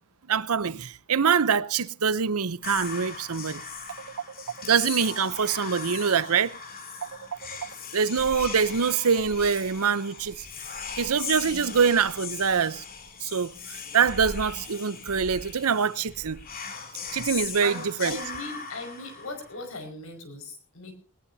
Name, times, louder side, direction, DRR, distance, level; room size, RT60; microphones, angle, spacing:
voice 1, 0.3-3.6 4.6-6.6 7.0-10.4 11.0-12.8 13.2-16.4 17.1-18.2, right 6 dB, 80° right, 0.8 m, -25 dB
Whispering, 2.6-19.8, left 5 dB, 40° left, 2.9 m, -39 dB
voice 2, 17.6-20.9, left 2 dB, 65° left, 5.3 m, -38 dB
21.0 x 19.5 x 2.8 m
head